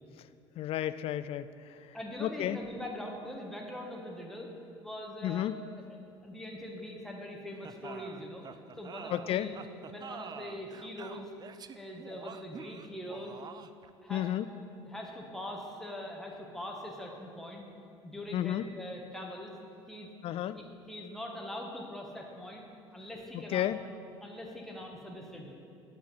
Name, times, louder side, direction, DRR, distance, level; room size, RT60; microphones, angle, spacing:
voice 1, 0.6-2.6 5.2-5.5 9.1-9.5 14.1-14.5 18.3-18.6 20.2-20.6 23.3-23.8, left 12 dB, 45° left, 14 dB, 0.4 m, -32 dB
voice 2, 1.9-4.5 4.8-5.5 6.2-8.4 8.8-9.5 9.9-11.3 11.7-13.4 14.0-14.3 14.8-17.6 18.0-19.5 19.9-20.1 20.5-22.6 22.9-23.7 24.2-25.5, left 1 dB, 5° left, 0 dB, 1.5 m, -42 dB
sound 1, 7.6-13.9, right 7 dB, 30° right, 0.4 m, -46 dB
8.7 x 7.2 x 5.6 m, 2.5 s
figure-of-eight pair, 60°, 14 cm